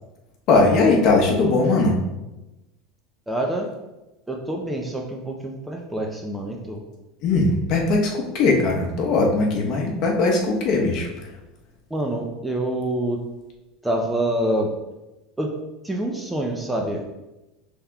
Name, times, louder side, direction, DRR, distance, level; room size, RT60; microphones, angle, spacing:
voice 1, 0.5-2.0 7.2-11.1, left 3 dB, 50° left, 0 dB, 0.9 m, -19 dB
voice 2, 3.3-3.7 4.3-6.8 11.9-13.2 13.8-14.7 15.4-15.5 15.8-17.1, right 1 dB, 5° right, 1 dB, 0.4 m, -26 dB
5.7 x 3.5 x 2.3 m, 1.0 s
supercardioid pair, 145°, 0 cm